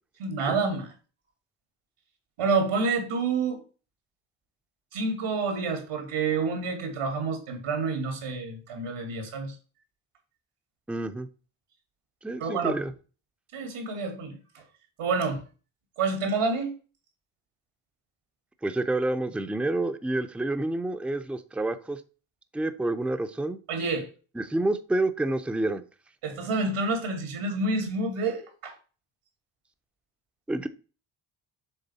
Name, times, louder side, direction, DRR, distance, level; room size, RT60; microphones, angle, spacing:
voice 1, 0.2-0.9 2.4-3.6 4.9-9.6 12.4-12.7 13.5-14.4 15.0-15.4 16.0-16.7 23.7-24.1 26.2-28.7, right 4 dB, 85° right, 2.2 m, -28 dB
voice 2, 10.9-11.3 12.2-12.9 18.6-22.0 22.5-23.6 24.3-25.8 30.5-30.7, right 2 dB, ahead, 0.6 m, -28 dB
6.9 x 3.6 x 4.1 m
cardioid pair, 70°, 49 cm